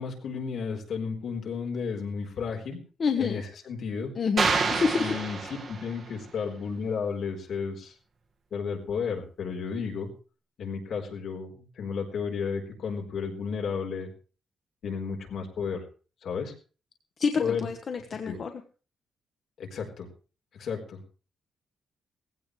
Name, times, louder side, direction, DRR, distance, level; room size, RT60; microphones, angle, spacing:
voice 1, 0.0-2.8 3.2-4.1 5.0-7.9 8.5-10.1 10.6-14.1 14.8-15.8 16.2-16.5 17.4-17.7 18.2-18.4 19.6-20.1 20.6-21.2, left 6 dB, 60° left, 2 dB, 4.2 m, -33 dB
voice 2, 3.0-3.4 4.1-5.2 17.2-18.5, left 5 dB, 35° left, 6 dB, 1.1 m, -28 dB
sound 1, 4.4-6.1, right 4 dB, 35° right, 1.8 m, -28 dB
18.0 x 16.0 x 3.3 m, 0.36 s
wide cardioid pair, 175°, 0 cm